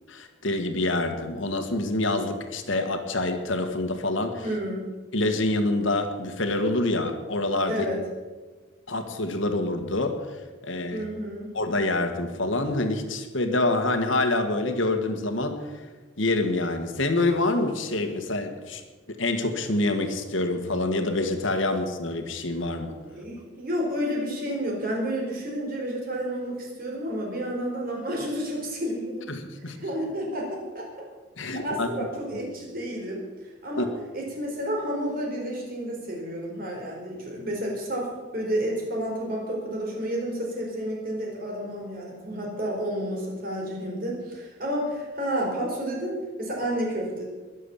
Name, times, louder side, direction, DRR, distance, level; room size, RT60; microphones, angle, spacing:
voice 1, 0.1-4.4 5.1-7.9 8.9-10.2 10.6-11.0 11.5-15.6 16.2-18.8 19.1-23.0 29.3-29.8 31.4-31.9 33.8-33.9, left 2 dB, 70° left, 6 dB, 1.6 m, -26 dB
voice 2, 4.4-4.9 7.6-8.0 10.9-11.5 23.0-29.3 29.8-30.9 31.6-33.3 33.6-33.9 34.1-47.3, equal, 45° right, -1 dB, 4.5 m, -30 dB
21.5 x 7.4 x 7.1 m, 1.3 s
head